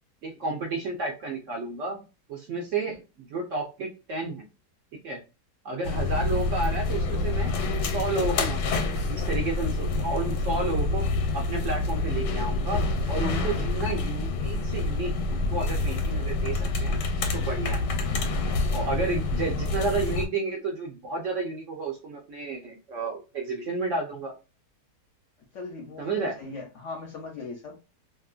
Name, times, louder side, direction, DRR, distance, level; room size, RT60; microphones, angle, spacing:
voice 1, 0.2-2.0 2.3-4.5 5.0-5.2 5.6-7.5 7.9-11.0 11.3-17.0 17.3-17.8 18.7-24.3 26.0-26.4, right 3 dB, 60° right, 0 dB, 0.8 m, -31 dB
sound 1, 5.8-20.3, left 3 dB, 85° left, 1.3 m, -27 dB
voice 2, 25.5-26.1 26.3-27.8, left 3 dB, 60° left, 1 dB, 0.8 m, -39 dB
2.9 x 2.5 x 2.3 m, 0.30 s
omnidirectional pair, 1.8 m